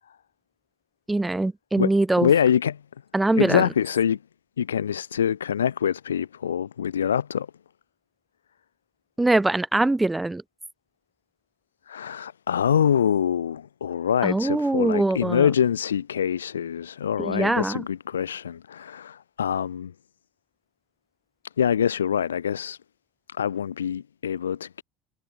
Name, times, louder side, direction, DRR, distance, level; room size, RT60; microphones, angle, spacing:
voice 1, 1.1-2.3 3.1-3.6 9.2-10.4 14.2-15.5 17.2-17.8, right 2 dB, 10° right, 2.1 m, -22 dB
voice 2, 2.2-2.8 3.3-4.2 4.6-7.5 11.9-19.9 21.6-22.8 23.4-24.8, left 8 dB, 90° left, 1.3 m, -25 dB
hypercardioid pair, 70°, 0 cm